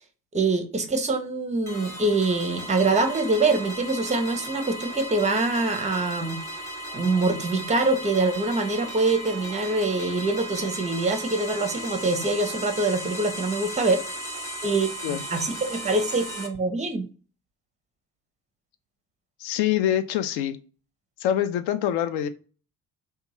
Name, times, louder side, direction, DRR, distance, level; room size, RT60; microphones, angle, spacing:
voice 1, 0.3-6.4 6.9-14.0 14.6-17.1, right 3 dB, 15° right, 0.6 m, -24 dB
sound 1, 1.7-16.5, right 1 dB, 5° left, 1.0 m, -36 dB
voice 2, 19.4-20.6 21.2-22.3, left 11 dB, 60° left, 0.5 m, -25 dB
2.6 x 2.3 x 2.9 m
hypercardioid pair, 50°, 47 cm